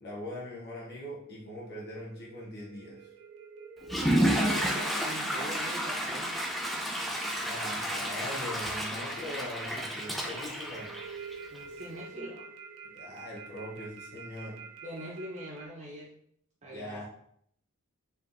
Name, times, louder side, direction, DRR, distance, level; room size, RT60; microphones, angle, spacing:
voice 1, 0.0-3.1 7.4-11.0 12.9-14.7 16.7-17.0, left 1 dB, 50° left, -4 dB, 0.9 m, -41 dB
sound 1, 1.2-15.7, right 4 dB, 75° right, 0.8 m, -48 dB
Water / Toilet flush, 3.8-11.6, equal, ahead, 0.4 m, -31 dB
voice 2, 3.9-6.4 11.5-12.5 14.8-16.1 16.6-17.0, equal, 35° right, -4 dB, 0.8 m, -43 dB
3.3 x 2.7 x 3.7 m, 0.66 s
head